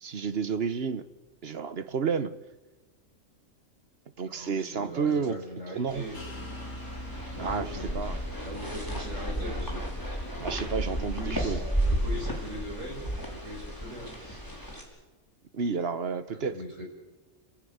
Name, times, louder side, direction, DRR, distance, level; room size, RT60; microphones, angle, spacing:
voice 1, 0.0-1.1 1.4-2.4 4.2-5.4 5.7-6.1 7.4-8.2 10.4-11.6 15.5-16.6, right 5 dB, 50° right, 13 dB, 1.3 m, -31 dB
voice 2, 4.2-6.2 7.3-9.9 10.9-14.4 16.3-16.8, equal, 75° right, 1 dB, 6.3 m, -41 dB
sound 1, 5.9-14.8, right 1 dB, 15° left, 5.2 m, -33 dB
sound 2, 6.1-11.5, left 1 dB, 75° left, 3.1 m, -43 dB
29.0 x 16.5 x 9.6 m, 1.2 s
omnidirectional pair, 1.3 m